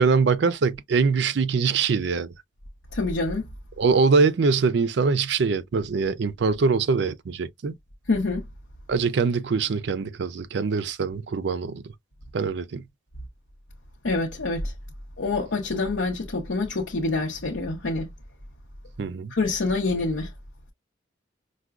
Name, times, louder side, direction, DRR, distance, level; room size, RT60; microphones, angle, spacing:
voice 1, 0.0-2.3 3.8-7.7 8.9-11.9 12.3-12.8 19.0-19.3, right 4 dB, 65° right, 0.4 m, -23 dB
voice 2, 2.9-3.5 8.1-8.5 14.0-14.7 15.2-18.1 19.3-20.3, left 3 dB, 85° left, 0.7 m, -26 dB
4.7 x 2.2 x 2.3 m
head